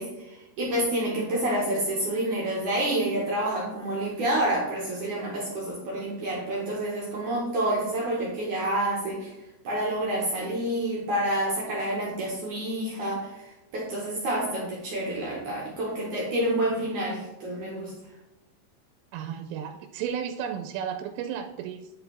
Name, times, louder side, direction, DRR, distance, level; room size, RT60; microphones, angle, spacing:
voice 1, 0.0-9.3 9.6-13.4 13.7-17.9, right 1 dB, 70° right, -4 dB, 1.9 m, -28 dB
voice 2, 19.1-21.9, right 8 dB, 85° right, 6 dB, 3.1 m, -33 dB
10.0 x 5.9 x 3.4 m, 0.93 s
omnidirectional pair, 5.7 m